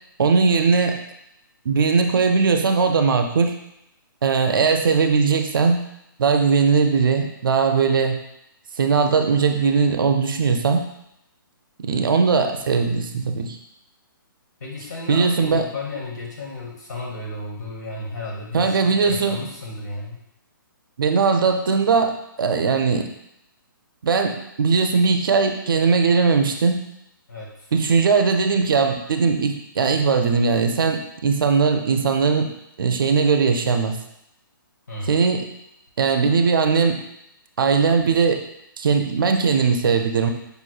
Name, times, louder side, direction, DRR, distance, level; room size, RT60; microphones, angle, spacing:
voice 1, 0.2-1.0 1.7-3.6 4.2-5.8 6.2-8.2 8.8-10.9 11.8-13.6 15.1-15.6 18.5-19.4 21.0-23.1 24.0-26.8 27.7-32.5 32.8-34.0 35.1-35.4 36.0-37.0 37.6-38.4 38.8-40.3, right 5 dB, 70° right, 5 dB, 0.5 m, -19 dB
voice 2, 14.6-20.2 27.3-27.7 34.9-35.2, left 2 dB, 50° left, -3 dB, 1.1 m, -33 dB
5.2 x 3.0 x 2.3 m, 0.80 s
hypercardioid pair, 170°, 12 cm